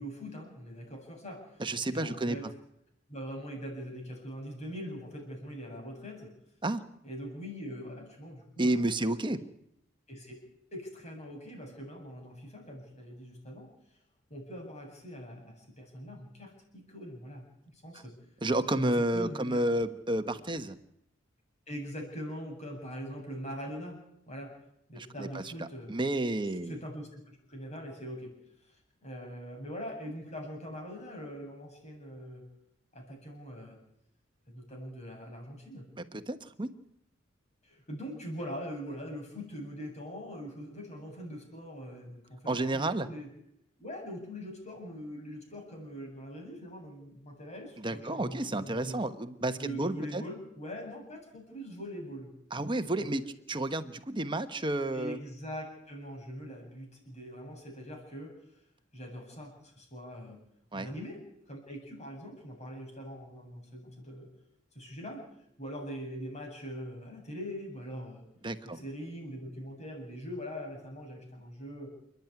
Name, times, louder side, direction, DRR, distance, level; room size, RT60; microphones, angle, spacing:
voice 1, 0.0-1.5 1.9-2.5 3.1-6.3 7.0-9.0 10.1-10.4 10.7-13.7 14.3-17.4 17.8-18.1 18.7-19.6 21.7-24.0 24.3-24.5 24.9-25.9 26.7-28.3 29.0-32.4 32.9-33.8 34.5-35.9 37.6-43.3 43.8-49.0 49.6-52.3 53.0-53.3 54.9-58.3 58.9-60.4 60.7-61.2 61.5-64.3 64.7-65.3 65.6-68.3 68.6-71.9, equal, 35° left, 1 dB, 8.0 m, -42 dB
voice 2, 1.6-2.4 6.6-6.8 8.6-9.4 18.4-20.8 25.0-26.8 36.0-36.7 42.5-43.1 47.8-50.2 52.5-55.2 60.7-60.9 68.4-68.8, right 1 dB, 25° right, 9 dB, 1.2 m, -31 dB
29.0 x 10.5 x 9.6 m, 0.76 s
head